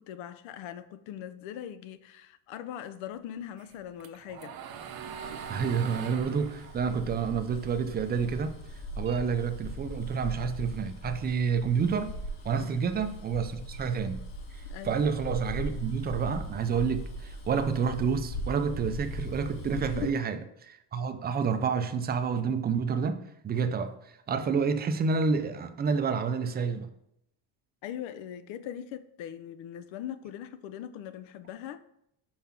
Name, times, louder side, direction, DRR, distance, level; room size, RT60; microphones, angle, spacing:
voice 1, 0.0-4.6 12.5-12.7 14.7-15.0 19.9-20.2 27.8-31.8, left 10 dB, 85° left, 0.7 m, -40 dB
sound 1, 3.6-8.1 8.5-10.0, right 7 dB, 55° right, 0.8 m, -43 dB
Bus, 4.9-20.1, equal, 60° left, 3.2 m, -40 dB
voice 2, 5.5-8.6 9.0-12.1 12.4-14.2 14.8-23.2 23.4-23.9 24.3-26.9, right 5 dB, 25° right, 0.4 m, -29 dB
5.6 x 4.8 x 5.7 m
cardioid pair, 155°, 45 cm